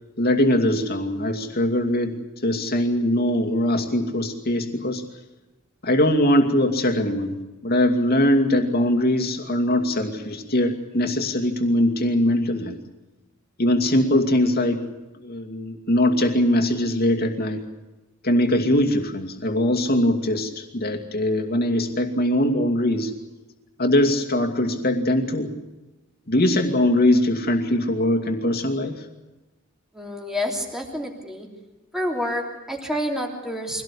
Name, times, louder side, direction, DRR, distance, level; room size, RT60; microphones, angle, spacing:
voice 1, 0.2-2.1 2.4-5.0 5.8-7.3 7.6-12.8 13.6-14.9 15.2-17.6 18.2-23.1 23.8-25.5 26.3-28.9, left 1 dB, 50° left, 5 dB, 2.5 m, -21 dB
voice 2, 29.9-31.5 31.9-33.8, equal, ahead, 0 dB, 3.1 m, -28 dB
24.0 x 17.5 x 8.5 m, 1.1 s
head